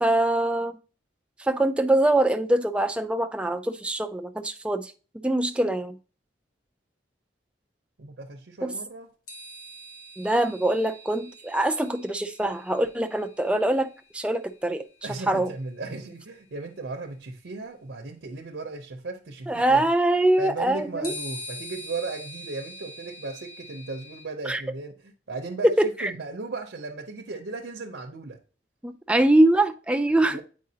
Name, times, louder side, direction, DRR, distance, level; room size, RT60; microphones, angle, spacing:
voice 1, 0.0-0.8 1.4-6.0 8.6-8.7 10.2-14.9 15.3-15.5 19.5-21.1 24.5-24.6 25.6-26.1 28.8-30.4, right 1 dB, 5° right, 0.3 m, -23 dB
voice 2, 8.0-9.1 15.0-19.9 20.4-28.4 30.2-30.4, right 3 dB, 70° right, 0.7 m, -36 dB
sound 1, 9.3-14.9 16.2-16.3 21.0-24.2, left 1 dB, 50° left, 1.2 m, -43 dB
8.4 x 4.6 x 2.8 m
head